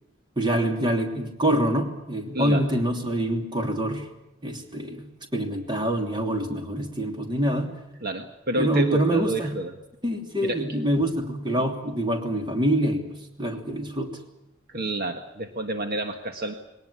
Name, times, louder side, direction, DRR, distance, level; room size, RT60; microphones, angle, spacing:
voice 1, 0.4-4.1 4.4-7.7 8.5-9.5 10.0-13.1 13.4-14.2, right 1 dB, 25° right, 4 dB, 2.9 m, -25 dB
voice 2, 8.0-9.7 10.4-10.8 14.7-16.5, right 2 dB, 50° right, 6 dB, 1.6 m, -29 dB
21.0 x 18.5 x 9.9 m, 0.89 s
head